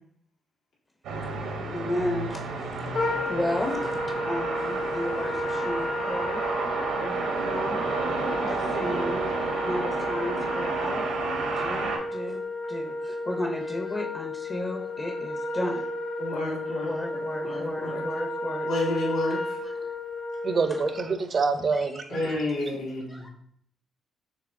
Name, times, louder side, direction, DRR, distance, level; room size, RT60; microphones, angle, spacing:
sound 1, 1.0-12.0, right 3 dB, 85° right, 0.8 m, -31 dB
voice 1, 1.2-6.4 7.0-7.8 8.3-12.4 12.7-15.8 16.8-18.7 19.6-20.0 20.7-20.8 21.7-22.5 23.1-23.3, left 1 dB, 30° left, 1 dB, 0.6 m, -34 dB
Wind instrument woodwind instrument, 2.9-21.0, left 1 dB, 65° left, 1.2 m, -32 dB
voice 2, 16.2-18.0 18.6-19.6 22.1-23.3, left 2 dB, 90° left, -6 dB, 1.7 m, -30 dB
voice 3, 20.4-22.2, right 4 dB, 45° right, 9 dB, 0.4 m, -26 dB
6.4 x 2.9 x 2.6 m, 0.68 s
cardioid pair, 90°, 0 cm